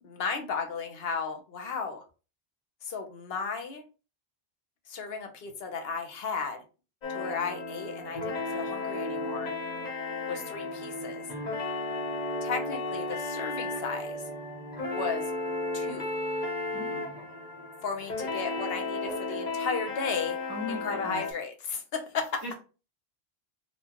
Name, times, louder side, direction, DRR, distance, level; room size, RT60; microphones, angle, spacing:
voice 1, 0.0-2.0 2.8-3.8 4.9-6.6 7.1-9.5 10.3-11.2 12.4-14.3 14.9-15.3 15.7-16.2 17.8-20.4 20.7-22.4, left 5 dB, 70° left, 5 dB, 1.0 m, -34 dB
sound 1, 7.0-21.3, left 2 dB, 45° left, 1.0 m, -34 dB
voice 2, 16.7-17.2 20.5-21.2 22.4-22.5, left 2 dB, 25° right, -5 dB, 1.0 m, -38 dB
4.3 x 2.3 x 2.9 m, 0.33 s
omnidirectional pair, 1.1 m